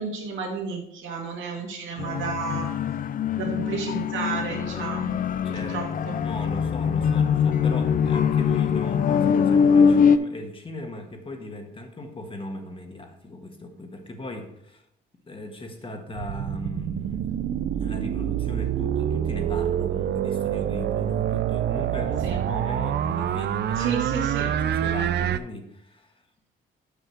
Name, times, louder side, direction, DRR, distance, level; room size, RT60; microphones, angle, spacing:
voice 1, 0.0-2.8 3.4-5.2 5.5-6.2 22.2-22.5 23.7-24.5, right 5 dB, 75° right, 1 dB, 2.0 m, -32 dB
sound 1, 2.0-10.2, left 7 dB, 45° left, 0.4 m, -22 dB
voice 2, 5.4-14.8 15.3-17.2 17.7-26.2, left 1 dB, 25° left, 5 dB, 1.4 m, -38 dB
sound 2, 16.1-25.4, right 10 dB, 60° right, 0.5 m, -26 dB
7.1 x 5.7 x 4.5 m, 0.79 s
cardioid pair, 90°, 20 cm